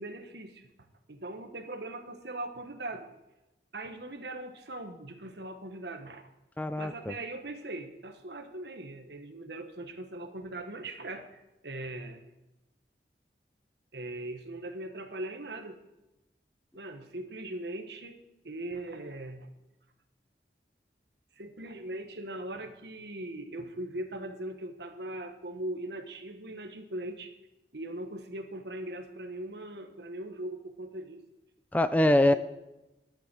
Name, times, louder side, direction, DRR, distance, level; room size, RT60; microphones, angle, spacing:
voice 1, 0.0-3.1 3.7-6.3 6.8-12.3 13.9-15.8 16.7-18.2 18.4-19.5 21.4-27.3 27.7-31.2, right 1 dB, 75° right, 7 dB, 1.3 m, -40 dB
voice 2, 6.6-7.1 31.7-32.3, left 1 dB, 10° left, 12 dB, 0.3 m, -23 dB
11.5 x 7.1 x 7.6 m, 0.98 s
head